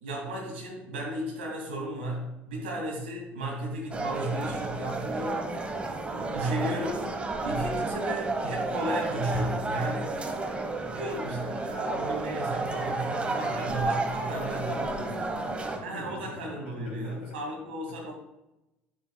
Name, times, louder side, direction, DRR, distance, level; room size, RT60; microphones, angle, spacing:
voice 1, 0.0-5.4 6.1-10.1 10.7-14.7 15.8-18.1, right 1 dB, 70° right, -1 dB, 2.3 m, -34 dB
sound 1, 3.9-15.8, right 2 dB, 20° right, 1.1 m, -32 dB
voice 2, 9.8-10.1 14.1-17.3, left 1 dB, 75° left, -4 dB, 3.0 m, -43 dB
10.0 x 7.7 x 2.3 m, 0.92 s
figure-of-eight pair, 60°, 6 cm